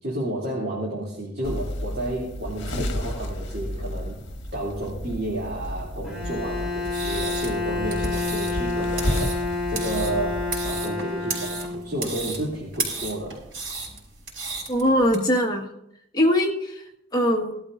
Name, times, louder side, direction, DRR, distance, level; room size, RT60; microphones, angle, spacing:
voice 1, 0.0-4.2 4.5-13.4, right 1 dB, 50° right, -6 dB, 3.0 m, -31 dB
Mandy Jacket Cloth pass, 1.4-10.7, left 1 dB, 65° left, 1.4 m, -32 dB
Bowed string instrument, 6.0-12.2, left 3 dB, ahead, 5.6 m, -29 dB
sound 1, 6.8-15.2, right 4 dB, 90° right, 4.9 m, -34 dB
voice 2, 14.7-15.7 16.1-16.8 17.1-17.6, equal, 20° left, -1 dB, 1.7 m, -21 dB
19.0 x 12.5 x 2.6 m, 0.78 s
head